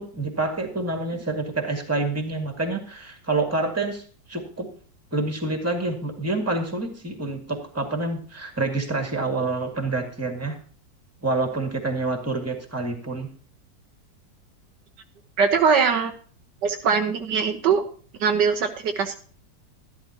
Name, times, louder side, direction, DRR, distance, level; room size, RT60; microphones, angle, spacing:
voice 1, 0.0-4.7 5.1-10.6 11.2-13.3, right 3 dB, 10° right, 4 dB, 1.9 m, -27 dB
voice 2, 15.4-16.1 16.6-17.8 18.2-19.2, right 6 dB, 70° right, 6 dB, 1.4 m, -21 dB
12.5 x 12.0 x 2.9 m, 0.42 s
omnidirectional pair, 2.0 m